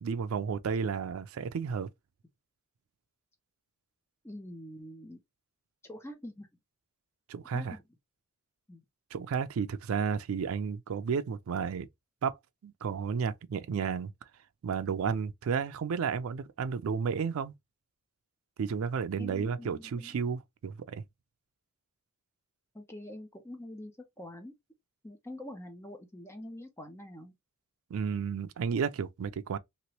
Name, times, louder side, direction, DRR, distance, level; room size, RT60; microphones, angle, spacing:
voice 1, 0.0-1.9 7.3-7.8 9.1-11.9 12.2-12.4 12.6-14.1 14.6-17.5 18.6-21.0 27.9-29.6, right 6 dB, 70° right, 0.4 m, -32 dB
voice 2, 4.2-5.2 5.8-6.5 7.4-7.8 8.7-8.8 19.2-20.2 22.7-24.5 25.0-27.3, left 1 dB, 10° left, 0.6 m, -45 dB
3.0 x 2.9 x 2.9 m
head